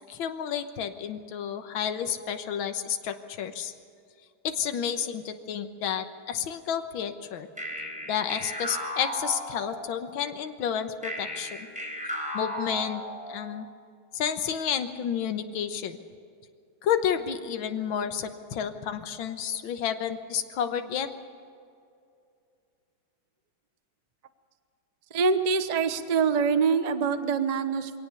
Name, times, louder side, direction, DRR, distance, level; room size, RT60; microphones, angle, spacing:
voice 1, 0.1-3.7 4.4-7.5 8.1-11.7 12.3-13.0 13.3-13.7 14.1-16.0 16.8-21.1, left 8 dB, 70° left, 8 dB, 1.9 m, -30 dB
sound 1, 7.6-10.1 11.0-13.5, equal, 5° right, 4.1 m, -35 dB
voice 2, 25.1-27.9, right 5 dB, 40° right, 10 dB, 0.6 m, -24 dB
23.0 x 17.5 x 7.0 m, 2.4 s
omnidirectional pair, 2.3 m